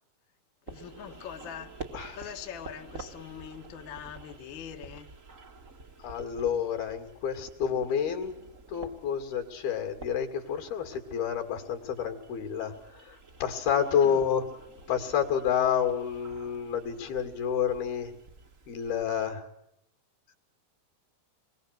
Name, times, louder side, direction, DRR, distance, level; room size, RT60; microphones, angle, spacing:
voice 1, 0.7-1.7 2.1-5.1 14.0-14.2, left 9 dB, 45° left, 1.6 m, -43 dB
sound 1, 0.7-19.3, right 3 dB, 45° right, 1.0 m, -49 dB
voice 2, 6.0-8.3 8.7-14.4 14.9-18.1 18.7-19.5, left 8 dB, 70° left, 4.5 m, -29 dB
28.0 x 22.0 x 8.1 m
omnidirectional pair, 4.5 m